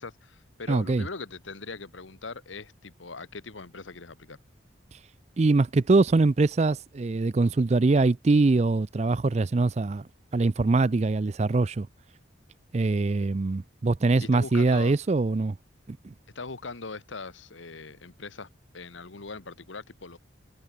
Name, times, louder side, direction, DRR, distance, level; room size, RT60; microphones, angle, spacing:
voice 1, 0.0-4.4 14.2-14.9 16.3-18.5 18.7-20.2, left 3 dB, 80° left, 1.4 m, -40 dB
voice 2, 0.7-1.1 5.4-10.1 10.3-11.9 12.7-15.6 15.9-16.1, right 3 dB, 35° right, 0.4 m, -23 dB
head